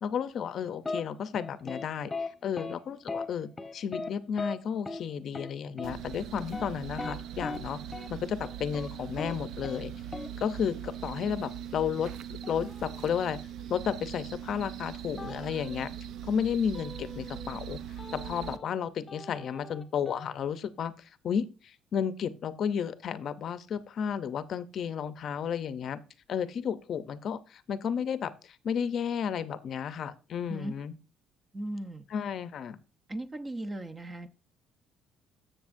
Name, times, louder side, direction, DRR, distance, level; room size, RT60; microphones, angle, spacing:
voice 1, 0.0-2.1 2.4-7.8 8.1-9.9 10.4-12.1 12.5-13.4 13.7-15.9 16.2-17.8 18.1-20.9 21.2-26.0 26.3-30.9 32.1-32.8, left 7 dB, 50° left, 13 dB, 0.6 m, -32 dB
sound 1, 0.8-1.0 1.3-1.8 2.1-2.3 2.6-2.7 3.1-3.3 3.6-4.1 4.4-4.5 4.9-5.0 5.3-5.5 5.8-5.9 6.4-7.6 7.9-8.1 8.4-8.9 9.2-9.3 9.6-9.8 10.1-10.3 12.4-13.2 15.2-15.9 16.7-17.6 18.0-18.8 19.1-20.3, left 3 dB, 15° left, 1.1 m, -39 dB
sound 2, 5.8-18.6, right 9 dB, 65° right, 0.5 m, -41 dB
voice 2, 30.4-30.7 31.5-32.1 33.1-34.3, right 1 dB, 20° right, 9 dB, 0.7 m, -37 dB
13.0 x 6.9 x 2.6 m, 0.32 s
cardioid pair, 120°, 0 cm